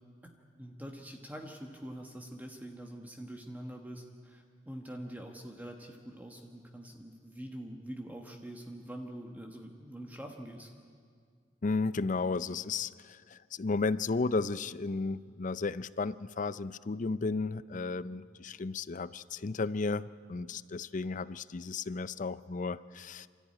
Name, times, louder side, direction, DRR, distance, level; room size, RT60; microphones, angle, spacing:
voice 1, 0.6-10.7, right 1 dB, 10° right, 2 dB, 1.3 m, -45 dB
voice 2, 11.6-23.3, left 3 dB, 45° left, 16 dB, 0.5 m, -34 dB
27.5 x 14.0 x 9.8 m, 2.1 s
head